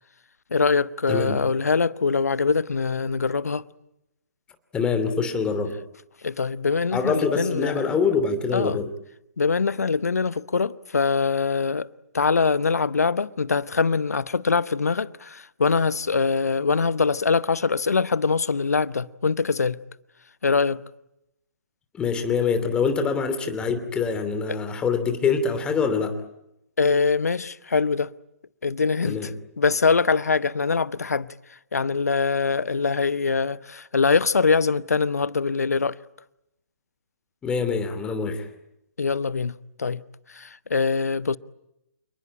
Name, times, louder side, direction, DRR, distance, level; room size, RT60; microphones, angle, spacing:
voice 1, 0.5-3.6 6.2-7.9 8.5-8.8 9.4-11.9 12.1-19.8 20.4-20.8 24.5-24.6 26.8-28.1 28.6-29.2 29.6-31.3 31.7-36.0 39.0-39.5 39.8-40.0 40.3-41.4, left 4 dB, 70° left, 0.9 m, -23 dB
voice 2, 1.1-1.4 4.7-5.7 6.9-8.9 21.9-26.2 29.0-29.3 37.4-38.5, left 5 dB, 10° left, 2.8 m, -24 dB
28.5 x 20.0 x 8.8 m
figure-of-eight pair, 130°, 9 cm